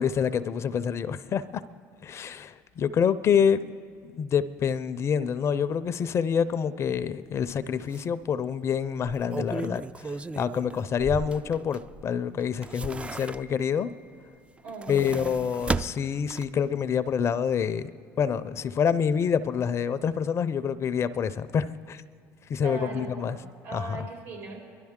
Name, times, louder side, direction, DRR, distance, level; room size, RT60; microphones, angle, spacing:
voice 1, 0.0-1.6 2.0-3.7 4.0-13.9 14.9-17.9 18.2-22.0 22.5-23.4 23.7-24.1, left 7 dB, 40° left, 14 dB, 0.5 m, -27 dB
sound 1, 7.4-7.5 7.9-8.0 9.0-12.0 12.4-13.8 14.6-16.7 17.1-17.2, right 3 dB, 15° right, 0.3 m, -35 dB
voice 2, 14.6-15.4 22.6-24.6, right 3 dB, 75° right, -3 dB, 4.6 m, -39 dB
23.0 x 11.5 x 3.7 m, 2.3 s
supercardioid pair, 90°, 7 cm